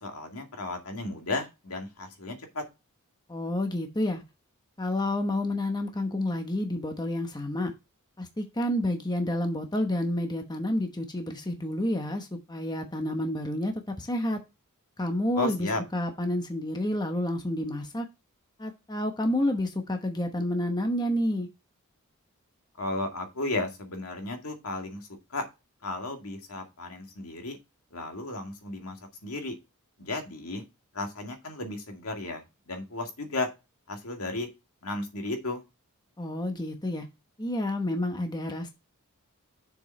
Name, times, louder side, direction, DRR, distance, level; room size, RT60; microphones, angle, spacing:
voice 1, 0.0-2.6 15.4-15.8 22.8-25.4 25.8-27.6 27.9-29.0 29.2-29.5 30.0-30.6 30.9-33.5 33.9-34.5 34.8-35.6, left 2 dB, 75° left, 3 dB, 2.1 m, -34 dB
voice 2, 3.3-4.2 4.8-7.7 8.2-14.4 15.0-18.1 18.6-21.5 36.2-37.1 37.4-38.7, left 1 dB, 20° left, 5 dB, 1.0 m, -29 dB
7.0 x 5.4 x 4.1 m, 0.24 s
head